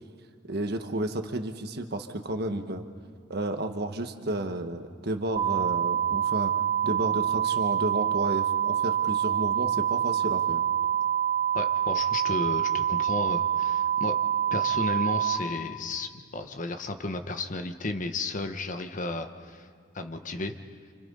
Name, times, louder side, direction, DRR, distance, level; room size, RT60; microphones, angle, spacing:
voice 1, 0.5-2.8 3.3-6.5 6.8-10.6, right 1 dB, 55° right, 7 dB, 1.4 m, -32 dB
sound 1, 5.4-15.4, right 10 dB, 40° right, 1.8 m, -26 dB
voice 2, 11.5-14.1 14.5-19.7 19.9-20.5, left 2 dB, 45° left, 7 dB, 1.1 m, -33 dB
29.0 x 27.5 x 5.5 m, 2.1 s
head